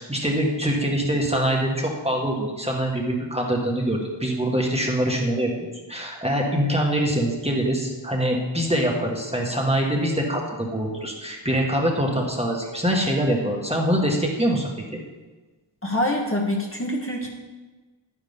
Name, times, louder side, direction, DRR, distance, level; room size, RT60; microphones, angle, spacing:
voice 1, 0.0-5.5 5.9-15.0, right 1 dB, 15° right, -1 dB, 1.7 m, -24 dB
voice 2, 15.8-17.3, left 1 dB, 25° left, -1 dB, 1.4 m, -25 dB
10.5 x 9.7 x 3.7 m, 1.2 s
wide cardioid pair, 75°, 48 cm